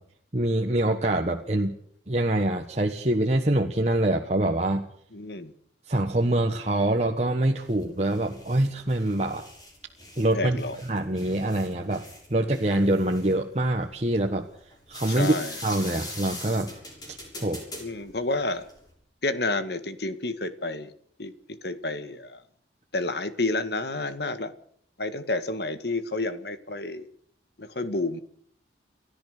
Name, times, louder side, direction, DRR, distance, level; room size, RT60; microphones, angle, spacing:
voice 1, 0.3-1.7 2.1-4.9 5.9-9.5 10.2-12.0 12.3-14.5 14.9-15.3 15.6-16.7 17.4-17.6, right 1 dB, 35° right, 2 dB, 1.4 m, -25 dB
voice 2, 5.1-5.5 10.3-10.8 15.1-15.6 17.8-18.6 19.2-20.9 21.2-22.4 22.9-24.5 25.0-27.1 27.6-28.2, left 2 dB, 60° left, 11 dB, 1.8 m, -30 dB
sound 1, 7.6-18.9, left 1 dB, 20° left, 7.1 m, -43 dB
30.0 x 13.5 x 6.7 m, 0.65 s
head